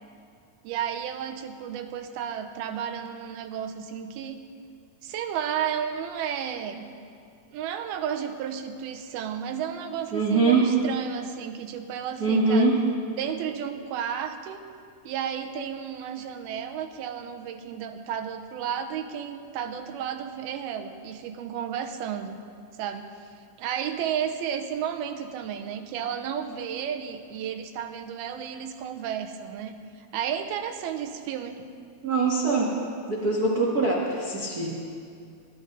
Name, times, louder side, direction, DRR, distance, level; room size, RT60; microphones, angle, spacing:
voice 1, 0.6-4.4 5.0-6.9 7.5-12.7 13.2-14.6 15.1-22.4 22.8-23.3 23.6-31.6, right 8 dB, 90° right, 6 dB, 2.6 m, -32 dB
voice 2, 10.1-10.7 12.2-12.8 32.0-32.7 33.1-34.7, right 3 dB, 65° right, -3 dB, 0.9 m, -23 dB
23.0 x 12.0 x 3.9 m, 2.4 s
omnidirectional pair, 4.4 m